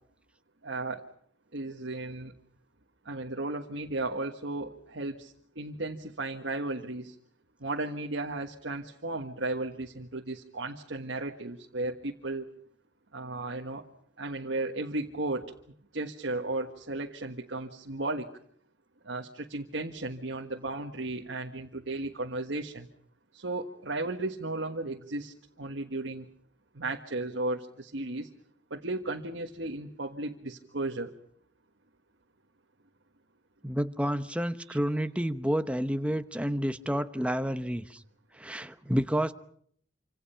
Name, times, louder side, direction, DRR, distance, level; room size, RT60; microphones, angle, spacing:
voice 1, 0.6-1.0 1.5-2.3 3.0-7.1 7.6-12.5 13.1-13.8 14.2-15.5 15.9-18.3 19.0-22.9 23.3-26.2 26.7-28.3 28.7-31.1 34.7-34.8, right 2 dB, 70° right, 1 dB, 1.6 m, -35 dB
voice 2, 33.6-38.0 38.4-39.3, equal, 5° right, 10 dB, 0.9 m, -29 dB
27.5 x 26.0 x 5.7 m, 0.66 s
head